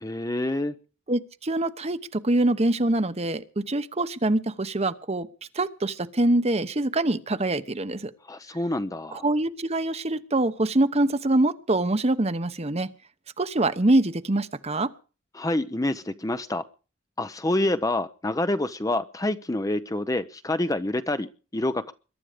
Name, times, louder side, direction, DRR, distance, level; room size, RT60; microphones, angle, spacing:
voice 1, 0.0-0.7 8.3-9.2 15.4-16.6 17.2-21.9, left 1 dB, 20° left, 11 dB, 0.7 m, -27 dB
voice 2, 1.1-5.3 5.5-8.1 9.1-12.9 13.4-14.9, right 2 dB, 35° right, 11 dB, 1.0 m, -24 dB
22.5 x 11.5 x 5.1 m, 0.36 s
head